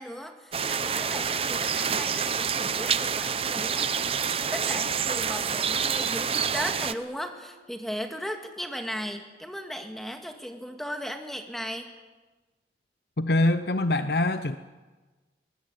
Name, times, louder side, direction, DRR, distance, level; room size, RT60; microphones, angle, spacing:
voice 1, 0.0-4.2 4.5-11.9, equal, ahead, 5 dB, 2.0 m, -37 dB
sound 1, 0.5-6.9, right 7 dB, 30° right, 0.7 m, -27 dB
voice 2, 13.2-14.6, left 2 dB, 65° left, 11 dB, 0.8 m, -24 dB
22.5 x 20.0 x 9.1 m, 1.3 s
head